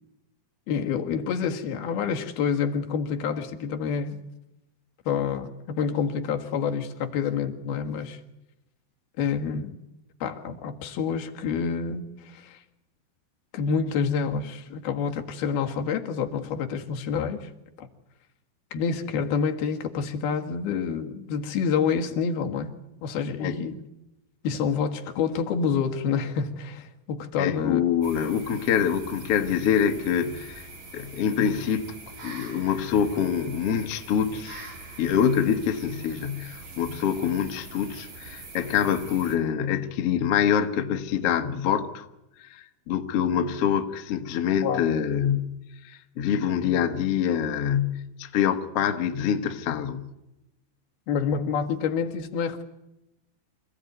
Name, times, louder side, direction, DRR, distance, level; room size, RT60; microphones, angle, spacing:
voice 1, 0.7-4.2 5.1-8.2 9.2-9.8 10.2-12.6 13.5-17.5 17.8-17.9 18.7-22.7 23.0-23.8 24.4-27.8 44.6-44.8 51.1-52.6, left 6 dB, 60° left, 3.4 m, -28 dB
voice 2, 27.4-30.7 30.9-34.6 35.0-42.0 42.4-45.6 45.8-50.1, left 8 dB, 80° left, 1.3 m, -25 dB
sound 1, 28.0-39.4, right 3 dB, 40° right, 5.0 m, -43 dB
27.0 x 17.0 x 9.4 m
omnidirectional pair, 5.4 m